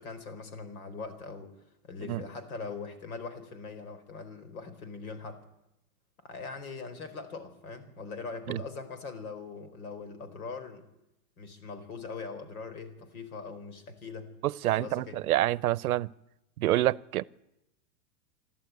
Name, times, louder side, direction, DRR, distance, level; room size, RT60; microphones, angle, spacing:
voice 1, 0.0-1.5 1.8-5.4 6.2-10.9 11.4-14.3 14.7-15.2, left 4 dB, 75° left, 4.4 m, -41 dB
voice 2, 14.4-16.1 16.6-17.2, right 15 dB, 80° right, 0.7 m, -27 dB
26.5 x 13.0 x 9.5 m
supercardioid pair, 180°, 43 cm